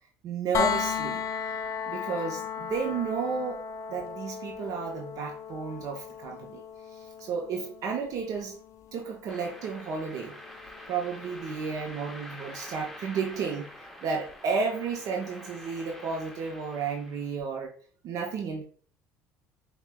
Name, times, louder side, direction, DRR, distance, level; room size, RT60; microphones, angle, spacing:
voice 1, 0.2-1.2 1.9-3.6 3.9-6.6 6.9-8.6 8.9-10.4 10.9-17.7 18.0-18.6, right 5 dB, 55° right, 2 dB, 0.6 m, -32 dB
sound 1, 0.5-12.4 14.3-14.4, left 7 dB, 45° left, 0.4 m, -36 dB
sound 2, 9.3-17.4, left 1 dB, ahead, 0.7 m, -46 dB
5.6 x 2.2 x 2.2 m, 0.43 s
supercardioid pair, 80°, 7 cm